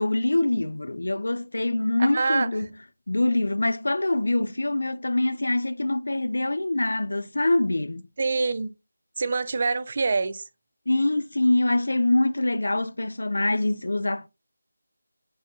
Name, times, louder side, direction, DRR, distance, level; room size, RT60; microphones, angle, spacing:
voice 1, 0.0-2.7 3.1-8.0 10.9-14.3, left 2 dB, 80° left, 0.4 m, -24 dB
voice 2, 2.0-2.5 8.2-8.7 9.2-10.4, right 4 dB, 40° right, 0.4 m, -25 dB
7.5 x 2.6 x 2.6 m
figure-of-eight pair, 170°, 0 cm